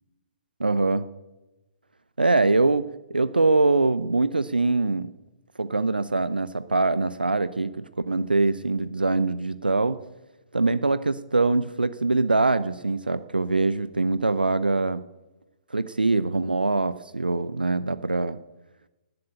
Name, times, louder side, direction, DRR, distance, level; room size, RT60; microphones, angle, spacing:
voice 1, 0.6-1.1 2.2-2.8 3.1-5.1 5.6-10.0 10.5-15.0 15.7-18.4, right 3 dB, 80° right, 15 dB, 0.6 m, -23 dB
18.5 x 7.8 x 8.8 m, 1.1 s
figure-of-eight pair, 125°, 5 cm